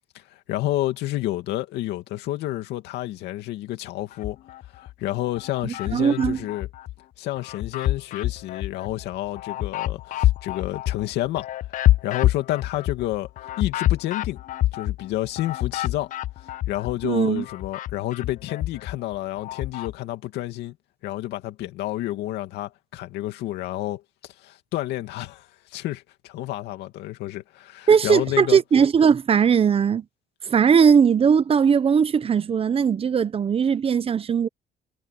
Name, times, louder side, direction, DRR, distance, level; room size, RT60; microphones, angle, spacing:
voice 1, 0.5-4.4 4.8-6.7 7.2-11.5 12.0-13.3 13.6-14.4 14.7-16.1 16.7-20.8 21.0-24.0 24.4-28.6, left 15 dB, 85° left, 2.5 m, -30 dB
sound 1, 4.1-4.9 5.4-7.0 7.4-17.1 17.4-19.9, left 14 dB, 50° left, 0.4 m, -27 dB
voice 2, 5.6-6.4 17.0-17.4 27.9-30.0 30.5-34.5, right 7 dB, 35° right, 0.9 m, -19 dB
cardioid pair, 110°, 17 cm